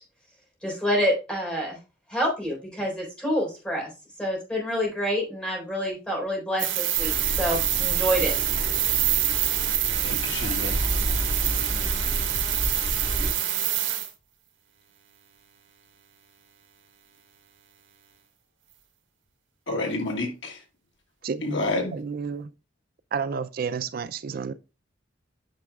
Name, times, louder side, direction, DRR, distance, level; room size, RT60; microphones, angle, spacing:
voice 1, 0.6-1.8 2.1-3.9 4.2-8.4, equal, 5° left, 3.6 m, -27 dB
sound 1, 6.6-14.1, right 11 dB, 75° right, 1.7 m, -26 dB
Thunder, 6.9-13.3, right 1 dB, 30° right, 3.1 m, -31 dB
voice 2, 10.0-10.8 19.7-20.5 21.4-22.0, left 2 dB, 70° left, 1.6 m, -29 dB
voice 3, 21.2-21.6 21.9-22.5 23.1-24.5, right 6 dB, 50° right, 0.4 m, -31 dB
9.0 x 6.2 x 2.3 m
head